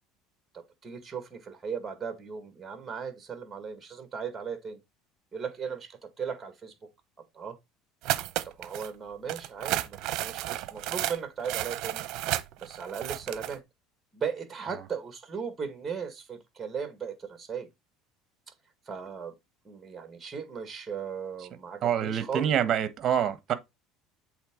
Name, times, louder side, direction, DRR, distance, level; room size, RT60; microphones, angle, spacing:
voice 1, 0.5-4.8 5.3-6.7 7.3-7.6 8.6-12.1 12.6-13.6 14.1-17.7 18.9-19.3 19.6-22.5, right 6 dB, 15° right, 1.9 m, -37 dB
sound 1, 8.0-8.9 9.3-13.6, right 15 dB, 60° right, 0.8 m, -32 dB
voice 2, 21.8-23.5, right 9 dB, 40° right, 1.2 m, -26 dB
8.0 x 3.6 x 3.8 m
supercardioid pair, 125°, 0 cm